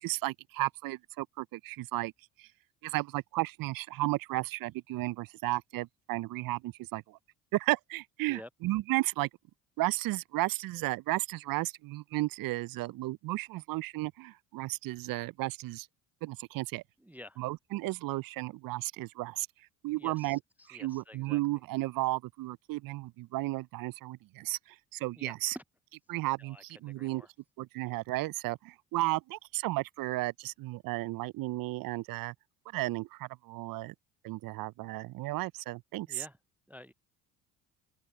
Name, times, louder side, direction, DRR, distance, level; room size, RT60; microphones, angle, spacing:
voice 1, 0.0-2.1 2.4-2.5 2.8-7.2 7.5-9.3 9.8-15.9 16.2-16.8 17.4-19.5 19.8-20.4 20.7-25.6 26.1-27.2 27.6-32.3 32.7-33.9 34.2-36.2, right 19 dB, 55° right, 0.5 m, -34 dB
voice 2, 17.0-17.4 19.9-21.4 25.2-25.6 26.4-27.3 36.0-36.4 36.7-36.9, left 1 dB, 5° right, 0.3 m, -50 dB
open air
hypercardioid pair, 60°, 42 cm